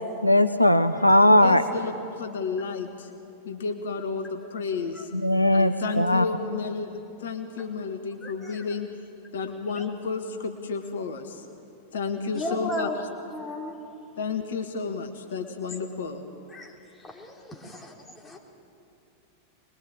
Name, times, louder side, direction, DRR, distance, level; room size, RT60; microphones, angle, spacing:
voice 1, 0.2-1.6 5.1-6.2, left 1 dB, 90° left, 11 dB, 0.6 m, -19 dB
voice 2, 1.4-3.1 3.4-5.1 5.5-8.9 9.3-11.4 11.9-12.9 14.2-16.2, left 5 dB, 65° left, 6 dB, 1.7 m, -32 dB
voice 3, 8.2-8.6 9.7-9.8 12.3-13.0 13.3-13.7 15.7-15.9 16.5-16.7 17.0-18.4, left 1 dB, 20° left, 0 dB, 4.0 m, -35 dB
24.0 x 21.5 x 9.0 m, 2.8 s
figure-of-eight pair, 90°, 0 cm